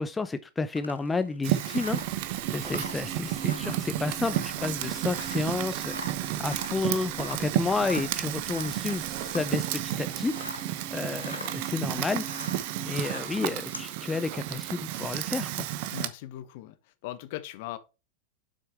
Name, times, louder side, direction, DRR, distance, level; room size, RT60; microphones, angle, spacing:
voice 1, 0.0-2.0 2.5-6.0 6.4-10.6 10.9-12.5 12.7-15.7, left 3 dB, 10° left, 0.4 m, -31 dB
sound 1, 0.8-10.7 11.0-13.9, left 3 dB, 80° left, 1.1 m, -44 dB
Fire, 1.4-16.1, right 14 dB, 50° right, 0.8 m, -32 dB
sound 2, 1.8-15.1, right 7 dB, 20° right, 1.4 m, -45 dB
voice 2, 15.9-16.7 17.0-17.8, left 14 dB, 50° left, 1.0 m, -38 dB
7.7 x 6.3 x 3.2 m
figure-of-eight pair, 90°, 0 cm